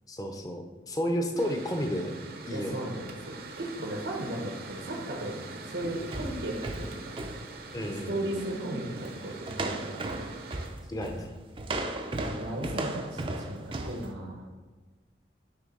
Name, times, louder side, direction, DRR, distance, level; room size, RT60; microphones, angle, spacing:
voice 1, 0.1-2.1 2.5-2.8 7.7-8.2 10.9-11.3, equal, 20° left, 3 dB, 0.7 m, -31 dB
Mechanical fan, 1.4-10.7, right 3 dB, 55° right, 0.8 m, -44 dB
voice 2, 2.5-7.2 8.1-10.0 12.3-14.4, right 1 dB, 80° right, -1 dB, 1.2 m, -36 dB
sound 1, 5.8-8.0 8.4-8.6 9.0-9.2 9.5-14.1, right 2 dB, 30° right, 0.5 m, -35 dB
9.7 x 3.3 x 5.3 m, 1.3 s
head